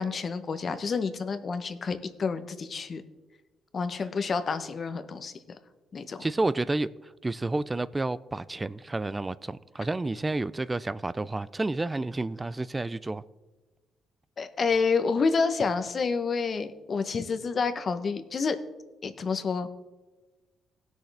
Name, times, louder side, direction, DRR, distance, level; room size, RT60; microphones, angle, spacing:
voice 1, 0.0-3.0 3.7-5.3 5.9-6.2 14.4-18.6 19.0-19.7, left 5 dB, 45° left, 0.9 m, -28 dB
voice 2, 6.2-6.9 7.2-13.2, right 2 dB, 20° right, 0.3 m, -30 dB
17.5 x 6.3 x 3.4 m
cardioid pair, 90°, 0 cm